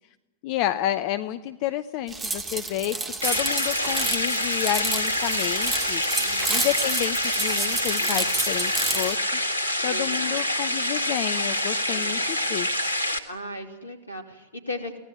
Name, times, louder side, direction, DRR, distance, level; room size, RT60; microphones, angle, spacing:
voice 1, 0.4-6.0 6.5-9.4 9.8-12.8, left 13 dB, 45° left, 11 dB, 0.8 m, -30 dB
sound 1, 2.1-9.2, right 3 dB, 15° right, 2.2 m, -30 dB
sound 2, 3.2-13.2, left 1 dB, 85° right, 1.8 m, -26 dB
voice 2, 6.1-6.6 8.0-8.9 9.9-10.7 11.9-12.1 12.4-12.8 13.3-15.0, left 1 dB, 80° left, 5 dB, 3.1 m, -39 dB
23.5 x 17.5 x 9.5 m, 1.0 s
figure-of-eight pair, 90°, 0 cm